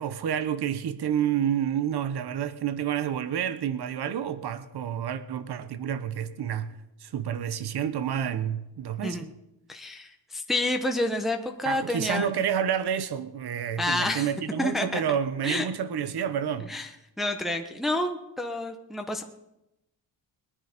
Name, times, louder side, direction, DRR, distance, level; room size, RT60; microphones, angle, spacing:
voice 1, 0.0-9.3 11.6-16.7, right 9 dB, 55° right, 1.0 m, -29 dB
voice 2, 9.7-12.3 13.8-14.3 14.6-15.0 15.4-15.6 16.7-16.9 17.2-19.2, left 1 dB, ahead, 0.9 m, -29 dB
21.5 x 10.0 x 5.2 m
wide cardioid pair, 160°, 46 cm